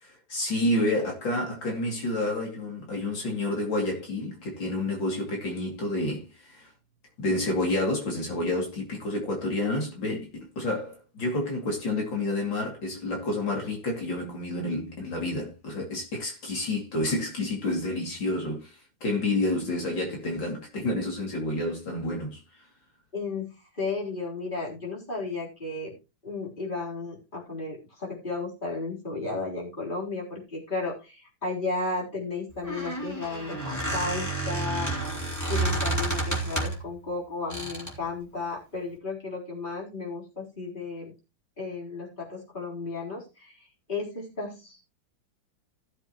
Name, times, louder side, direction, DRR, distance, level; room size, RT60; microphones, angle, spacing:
voice 1, 0.0-6.7 7.2-22.4, left 1 dB, 70° left, 3.3 m, -29 dB
voice 2, 23.1-26.0 26.2-34.9 35.5-41.1 41.6-44.9, left 3 dB, 25° left, 4.0 m, -34 dB
Squeak, 32.5-36.9 37.5-38.0, right 2 dB, 10° left, 3.4 m, -30 dB
16.5 x 7.5 x 3.0 m
omnidirectional pair, 2.2 m